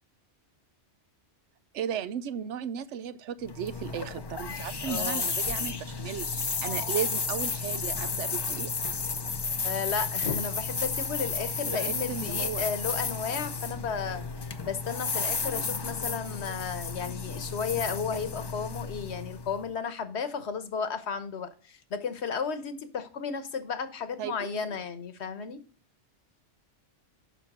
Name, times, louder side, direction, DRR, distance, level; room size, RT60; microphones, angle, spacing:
voice 1, 1.7-8.7 11.7-12.7 24.2-24.7, right 8 dB, 75° right, 14 dB, 0.9 m, -35 dB
sound 1, 3.4-19.6, left 4 dB, 35° left, 0.4 m, -32 dB
voice 2, 4.8-5.3 5.7-5.8 9.6-25.6, left 6 dB, 65° left, 11 dB, 1.2 m, -34 dB
7.2 x 5.8 x 5.9 m, 0.38 s
omnidirectional pair, 1.2 m